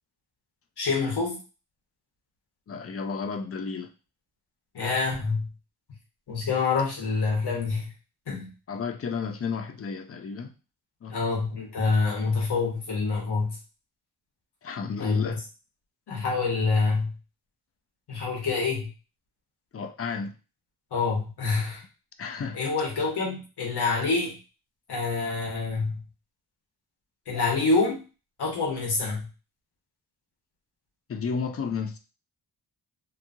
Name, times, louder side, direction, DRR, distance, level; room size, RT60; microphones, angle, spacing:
voice 1, 0.8-1.4 4.7-5.5 6.3-7.9 8.3-8.5 11.1-13.6 15.0-15.3 16.1-17.1 18.1-18.9 20.9-21.8 22.5-24.4 24.9-26.0 27.3-28.0 28.4-29.3, left 4 dB, 75° left, 1.2 m, -26 dB
voice 2, 2.7-3.9 8.7-10.5 11.0-11.2 14.6-15.4 19.7-20.4 22.2-22.6 31.1-32.0, left 5 dB, 35° left, 0.4 m, -32 dB
2.9 x 2.3 x 2.6 m
cardioid pair, 85°, 40 cm